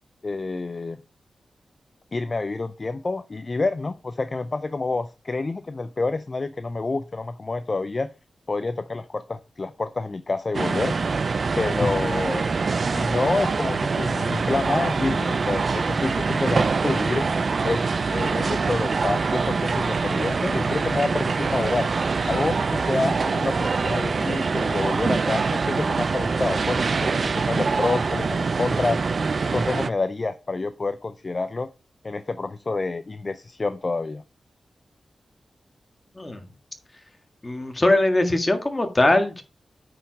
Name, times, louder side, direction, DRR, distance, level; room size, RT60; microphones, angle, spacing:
voice 1, 0.2-1.0 2.1-8.1 8.5-11.0 11.6-12.4 12.9-17.2 17.6-17.9 18.1-21.9 22.3-29.0 29.5-31.7 32.0-34.2, left 3 dB, 40° left, 0.5 m, -28 dB
sound 1, 10.5-29.9, right 4 dB, 55° right, 0.5 m, -24 dB
voice 2, 37.4-39.4, left 2 dB, 25° left, 1.6 m, -21 dB
8.8 x 4.9 x 4.6 m
wide cardioid pair, 80°, 0 cm